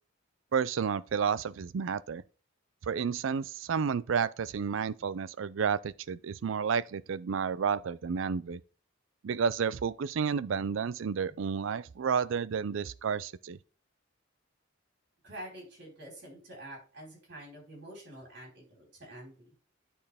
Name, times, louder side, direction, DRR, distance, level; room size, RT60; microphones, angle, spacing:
voice 1, 0.5-2.2 2.8-8.6 9.2-13.6, right 6 dB, 80° right, 0.4 m, -31 dB
voice 2, 15.2-19.5, right 1 dB, 55° right, 4.5 m, -47 dB
10.0 x 4.3 x 3.5 m
head